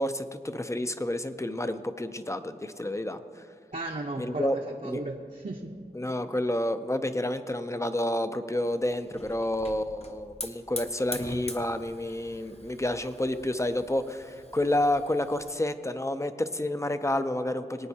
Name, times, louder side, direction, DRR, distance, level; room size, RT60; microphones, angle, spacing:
voice 1, 0.0-3.2 4.2-4.6 4.8-5.0 5.9-17.9, left 1 dB, 15° left, 10 dB, 0.6 m, -29 dB
voice 2, 3.7-5.7, right 2 dB, 50° right, -2 dB, 0.9 m, -35 dB
Hiss / Fire, 8.7-15.6, left 1 dB, 35° left, 0.9 m, -43 dB
23.0 x 9.1 x 2.8 m, 2.2 s
wide cardioid pair, 70°, 18 cm